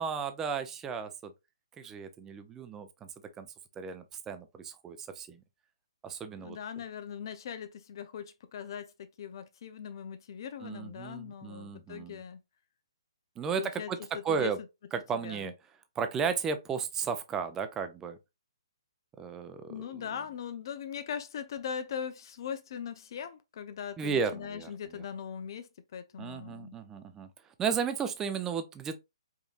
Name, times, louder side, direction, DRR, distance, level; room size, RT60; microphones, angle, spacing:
voice 1, 0.0-1.3 1.8-3.1 3.4-3.5 3.8-5.4 6.0-6.6 10.6-12.2 13.4-14.0 14.2-14.6 14.9-15.5 16.0-18.2 19.2-20.0 24.0-25.0 26.2-27.3 27.6-29.0, right 6 dB, 15° right, 0.5 m, -34 dB
voice 2, 6.4-12.4 13.6-13.9 14.1-14.5 15.1-15.5 19.7-26.8, left 8 dB, 50° left, 0.5 m, -40 dB
5.0 x 2.7 x 2.4 m
hypercardioid pair, 145°, 3 cm